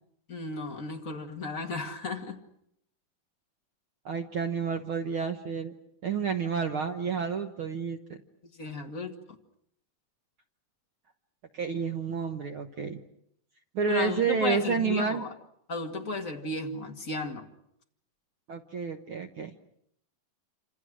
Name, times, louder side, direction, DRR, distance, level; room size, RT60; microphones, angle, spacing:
voice 1, 0.3-2.4 8.5-9.4 13.9-15.3 15.7-17.5, left 3 dB, 30° left, 2 dB, 1.9 m, -34 dB
voice 2, 4.0-5.7 6.0-8.0 11.5-13.0 13.7-15.2 18.5-19.5, right 6 dB, 70° right, 5 dB, 1.2 m, -30 dB
27.5 x 27.0 x 6.3 m, 0.73 s
omnidirectional pair, 3.9 m